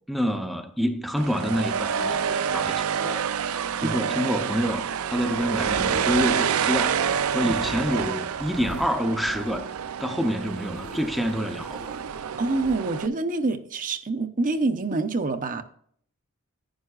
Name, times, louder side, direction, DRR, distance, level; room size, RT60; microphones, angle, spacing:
voice 1, 0.1-3.2 3.8-4.8 5.1-7.0 7.3-9.7 10.0-12.0, equal, ahead, 0.6 m, -27 dB
sound 1, 1.2-13.1, right 7 dB, 75° right, 0.5 m, -28 dB
sound 2, 5.2-10.0 10.4-12.8, left 1 dB, 80° left, 1.1 m, -44 dB
voice 2, 12.4-15.6, right 3 dB, 40° right, 0.7 m, -26 dB
11.0 x 10.0 x 2.4 m
head